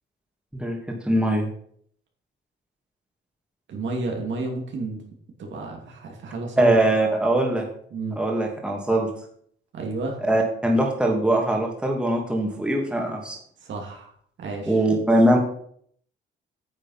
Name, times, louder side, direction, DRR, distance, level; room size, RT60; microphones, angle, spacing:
voice 1, 0.5-1.5 6.6-7.6 8.2-9.1 10.3-13.4 14.7-15.4, right 1 dB, 5° right, 0 dB, 2.7 m, -21 dB
voice 2, 3.7-5.0 5.4-6.8 7.9-8.2 9.7-10.2 13.6-14.1 14.4-14.8, right 2 dB, 70° right, 1 dB, 2.8 m, -31 dB
9.2 x 7.1 x 5.8 m, 0.63 s
cardioid pair, 90°, 20 cm